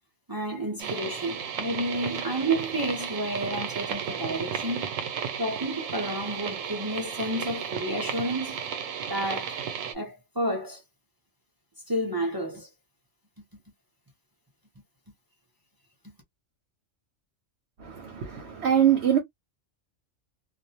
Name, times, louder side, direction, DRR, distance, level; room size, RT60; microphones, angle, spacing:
voice 1, 0.3-4.9 5.4-8.6 9.1-9.6 9.9-10.8 11.9-12.7, right 1 dB, 25° right, 0.5 m, -30 dB
sound 1, 0.8-9.9, right 7 dB, 90° right, 1.0 m, -34 dB
voice 2, 17.8-19.2, right 9 dB, 60° right, 0.9 m, -23 dB
2.5 x 2.0 x 2.7 m
omnidirectional pair, 1.3 m